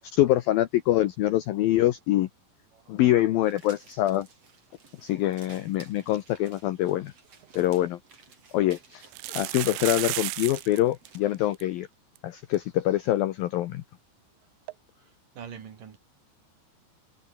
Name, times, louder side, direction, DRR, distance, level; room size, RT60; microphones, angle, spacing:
voice 1, 0.0-2.3 2.9-4.3 5.0-7.1 7.5-8.0 8.5-11.9 12.2-13.8, left 14 dB, 75° left, 2.2 m, -25 dB
sound 1, 3.4-11.6, right 5 dB, 35° right, 4.3 m, -55 dB
sound 2, 7.4-7.5 7.8-7.9 9.0-10.8 11.1-11.2 11.3-11.6 12.2-12.3 12.5-12.6 14.7-14.8, right 21 dB, 85° right, 2.8 m, -33 dB
voice 2, 15.0-16.0, right 8 dB, 50° right, 3.5 m, -45 dB
omnidirectional pair, 5.3 m